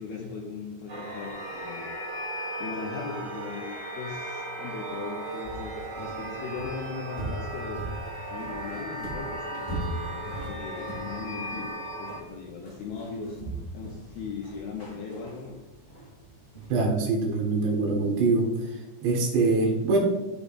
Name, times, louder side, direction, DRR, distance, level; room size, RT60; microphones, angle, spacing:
voice 1, 0.0-1.9 2.6-3.7 4.0-7.8 8.3-13.4 13.7-15.6, left 5 dB, 80° left, 0 dB, 2.2 m, -38 dB
sound 1, 0.9-12.2, right 1 dB, 55° right, 4.2 m, -37 dB
sound 2, 5.4-16.7, right 1 dB, 45° left, 0.6 m, -40 dB
voice 2, 16.7-18.5 19.0-20.0, right 3 dB, 75° right, 0 dB, 3.5 m, -24 dB
14.0 x 5.1 x 2.5 m, 1.1 s
omnidirectional pair, 5.2 m